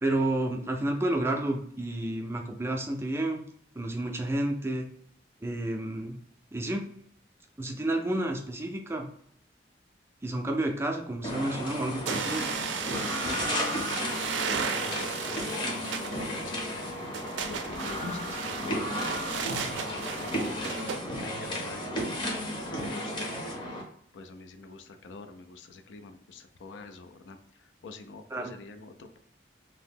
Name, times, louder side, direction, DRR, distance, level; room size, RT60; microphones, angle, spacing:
voice 1, 0.0-3.4 3.8-4.9 5.4-6.2 6.5-6.8 7.6-9.1 10.2-12.5 28.3-28.5, right 1 dB, 15° right, 2 dB, 0.3 m, -30 dB
sound 1, 11.2-23.8, equal, 25° left, 0.7 m, -34 dB
sound 2, 12.1-21.0, right 6 dB, 90° right, 0.4 m, -35 dB
voice 2, 12.9-16.8 17.4-21.9 22.5-23.3 24.1-29.2, left 3 dB, 85° left, 8 dB, 0.4 m, -45 dB
2.8 x 2.0 x 3.4 m, 0.64 s
head